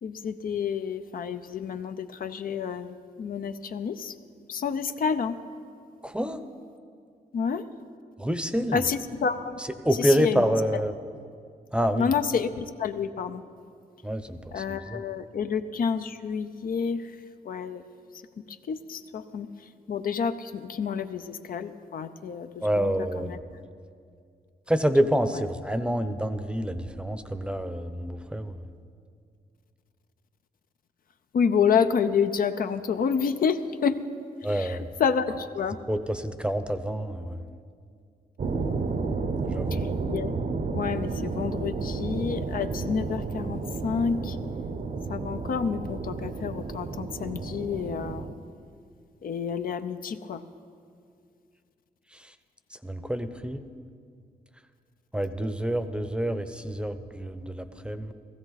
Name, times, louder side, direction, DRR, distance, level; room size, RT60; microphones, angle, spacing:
voice 1, 0.0-4.1 4.5-5.4 7.3-7.6 8.7-9.6 10.0-10.5 12.0-13.4 14.5-17.1 17.4-17.8 18.5-19.5 19.9-23.4 25.3-25.4 31.3-34.0 34.5-35.8 39.7-40.3 40.7-44.4 45.1-48.3 49.2-50.4, left 6 dB, 60° left, 9 dB, 0.6 m, -29 dB
voice 2, 6.0-6.4 8.2-8.8 9.6-10.9 11.7-12.1 14.0-15.0 22.6-23.4 24.7-28.6 34.4-34.9 35.9-37.4 39.4-39.9 52.1-52.3 52.7-53.6 55.1-58.1, equal, 5° right, 10 dB, 0.7 m, -27 dB
sound 1, 38.4-48.3, right 4 dB, 50° right, 0.9 m, -31 dB
16.0 x 15.0 x 4.1 m, 2.3 s
cardioid pair, 80°, 16 cm